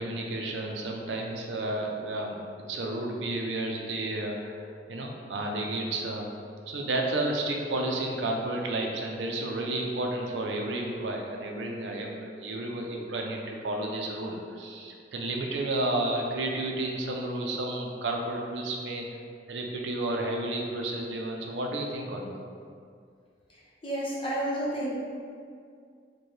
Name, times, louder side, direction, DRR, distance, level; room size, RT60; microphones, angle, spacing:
voice 1, 0.0-2.4 2.7-4.6 4.9-6.3 6.7-19.0 19.5-22.4, right 2 dB, 85° right, 1 dB, 0.5 m, -31 dB
voice 2, 23.8-24.9, right 1 dB, 30° left, -6 dB, 0.8 m, -30 dB
4.4 x 2.2 x 3.1 m, 2.2 s
head